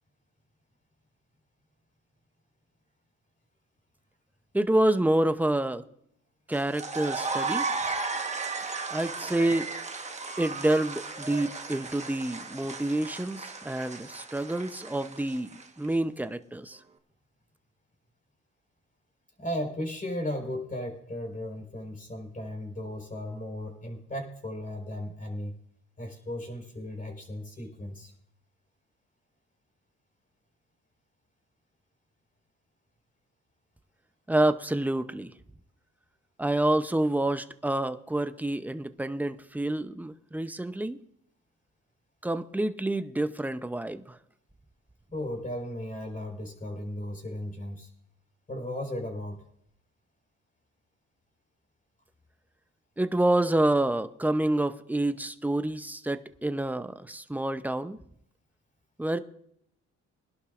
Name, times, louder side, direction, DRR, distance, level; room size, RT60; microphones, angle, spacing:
voice 1, 4.5-5.8 6.5-7.7 8.9-9.7 10.4-16.8 34.3-35.3 36.4-41.0 42.2-44.2 53.0-58.0 59.0-59.2, right 1 dB, 5° right, 11 dB, 0.7 m, -28 dB
sound 1, 6.5-15.9, right 4 dB, 25° right, 1.3 m, -35 dB
voice 2, 19.4-25.5 26.0-28.1 45.1-47.9 48.5-49.4, left 1 dB, 25° left, 3 dB, 4.3 m, -36 dB
23.5 x 11.5 x 2.5 m, 0.72 s
cardioid pair, 90°, 30 cm